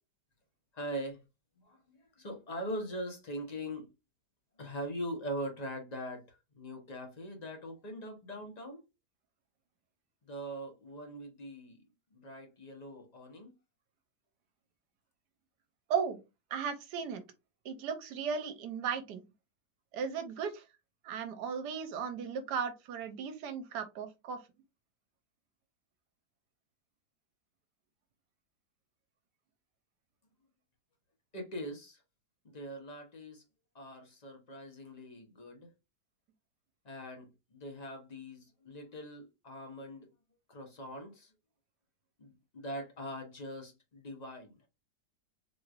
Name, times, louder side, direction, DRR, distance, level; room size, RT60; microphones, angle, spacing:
voice 1, 0.7-1.2 1.6-3.9 4.6-8.8 10.2-11.8 12.1-13.5 31.3-32.0 32.4-33.4 33.7-35.7 36.8-40.1 40.5-41.3 42.2-44.6, equal, 30° left, 0.9 m, -42 dB
voice 2, 16.5-17.2 17.6-19.2 19.9-20.6 21.0-24.4, right 6 dB, 75° right, 1.3 m, -36 dB
4.1 x 3.2 x 2.4 m
omnidirectional pair, 1.8 m